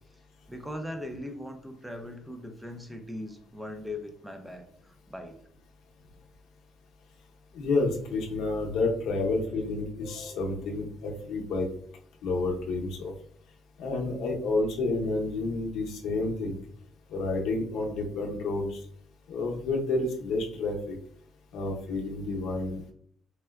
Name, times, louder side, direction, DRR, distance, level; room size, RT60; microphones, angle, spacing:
voice 1, 0.5-5.4, left 1 dB, 5° right, 5 dB, 0.4 m, -39 dB
voice 2, 7.5-11.7 12.2-13.1 13.8-16.6 17.1-18.8 19.3-21.0 21.5-22.9, left 3 dB, 70° left, 1 dB, 0.7 m, -30 dB
4.3 x 2.2 x 2.2 m, 0.63 s
cardioid pair, 165°, 0 cm